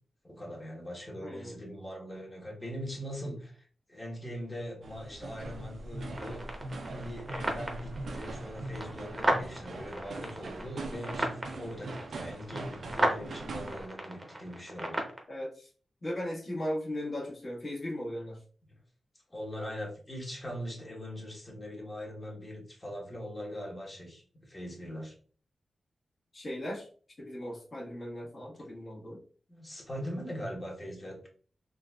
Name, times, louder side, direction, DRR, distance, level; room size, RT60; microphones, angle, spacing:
voice 1, 0.2-6.5 6.9-15.0 19.3-25.1 29.5-31.3, equal, 25° left, -2 dB, 1.2 m, -41 dB
voice 2, 1.2-1.7 15.3-15.7 16.0-18.4 26.3-26.9 27.2-29.2, left 1 dB, 45° left, -5 dB, 1.5 m, -37 dB
sound 1, 4.8-13.9, right 2 dB, 80° right, 0.5 m, -41 dB
sound 2, 6.1-15.2, right 1 dB, 20° right, 0.8 m, -35 dB
3.8 x 2.5 x 2.3 m, 0.43 s
cardioid pair, 80°, 0 cm